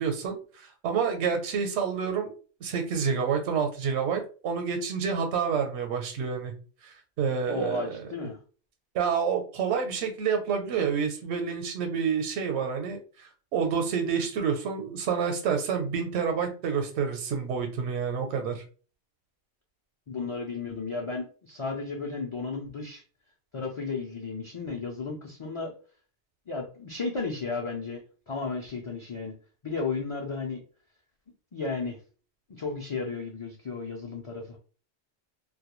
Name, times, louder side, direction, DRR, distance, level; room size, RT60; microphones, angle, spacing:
voice 1, 0.0-2.3 2.6-6.5 6.8-7.8 8.9-18.6, right 6 dB, 75° right, 4 dB, 0.9 m, -28 dB
voice 2, 7.5-8.4 20.1-23.0 23.5-25.7 26.5-29.4 29.6-30.6 31.5-32.0 32.5-34.6, left 4 dB, 45° left, -1 dB, 0.4 m, -34 dB
2.3 x 2.1 x 3.0 m, 0.37 s
omnidirectional pair, 1.1 m